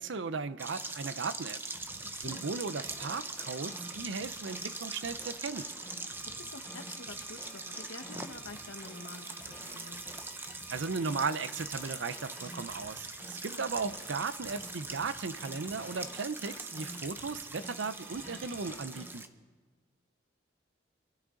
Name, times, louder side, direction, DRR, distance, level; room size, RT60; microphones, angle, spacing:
voice 1, 0.0-1.6 2.2-5.7 10.7-19.2, right 4 dB, 75° right, 14 dB, 0.6 m, -36 dB
sound 1, 0.6-19.3, right 3 dB, 10° right, 0.6 m, -42 dB
sound 2, 1.7-19.2, equal, 10° left, 4.3 m, -51 dB
sound 3, 1.9-18.7, right 2 dB, 40° right, 2.1 m, -56 dB
voice 2, 2.0-2.5 6.2-10.1 13.5-14.0, left 3 dB, 85° left, 6 dB, 1.3 m, -48 dB
26.5 x 12.5 x 3.8 m, 1.4 s
head